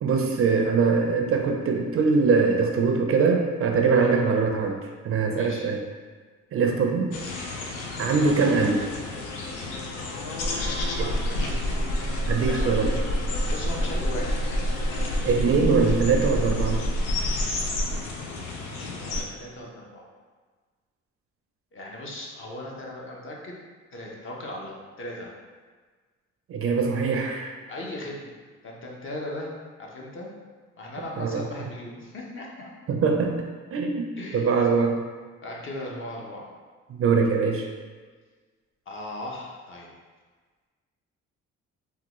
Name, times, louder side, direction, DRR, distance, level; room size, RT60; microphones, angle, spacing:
voice 1, 0.0-4.8 5.0-5.8 6.5-7.1 8.0-8.8 11.0-11.1 12.3-12.9 15.2-16.9 26.5-27.5 31.2-31.4 32.9-34.1 34.3-35.0 36.9-37.7, right 4 dB, 50° right, 3 dB, 0.4 m, -22 dB
voice 2, 5.4-5.7 10.4-11.6 12.4-13.1 13.5-14.9 18.6-20.1 21.7-23.6 23.9-25.3 27.7-28.3 28.6-29.5 29.8-30.3 30.8-32.7 34.2-34.5 35.4-36.4 38.9-39.9, left 1 dB, 40° left, -2 dB, 0.7 m, -38 dB
sound 1, 7.1-19.2, left 1 dB, 90° left, 0.5 m, -28 dB
3.5 x 2.2 x 2.9 m, 1.4 s
cardioid pair, 90°, 30 cm